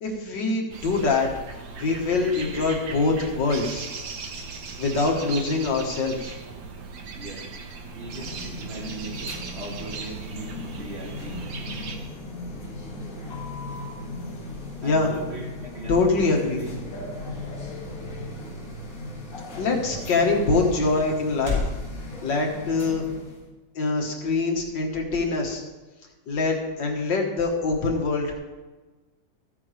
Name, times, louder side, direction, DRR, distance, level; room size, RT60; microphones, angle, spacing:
voice 1, 0.0-1.3 1.8-3.9 4.8-6.3 14.8-15.1 15.9-16.6 19.6-21.6 22.2-23.0 23.8-25.6 26.3-28.3, left 3 dB, 70° left, 1 dB, 2.1 m, -24 dB
sound 1, 0.7-12.0, right 4 dB, 65° right, 1.6 m, -38 dB
voice 2, 7.2-7.5 7.9-11.4 14.8-16.7, right 2 dB, 40° right, 0 dB, 1.4 m, -39 dB
sound 2, 7.8-23.5, left 1 dB, 50° left, 2.2 m, -37 dB
sound 3, 15.5-21.8, left 4 dB, 15° right, 4.4 m, -37 dB
14.0 x 9.6 x 3.3 m, 1.2 s
omnidirectional pair, 2.0 m